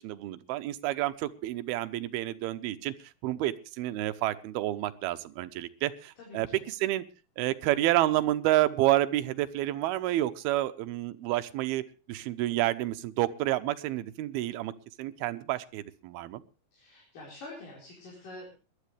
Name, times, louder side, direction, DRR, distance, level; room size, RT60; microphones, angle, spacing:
voice 1, 0.0-2.9 3.2-7.0 7.4-11.8 12.1-14.7 15.0-16.4, right 15 dB, 85° right, 11 dB, 2.7 m, -29 dB
voice 2, 6.2-6.6 16.7-18.5, left 2 dB, 60° left, -4 dB, 6.2 m, -46 dB
21.0 x 12.5 x 3.3 m, 0.34 s
omnidirectional pair, 4.4 m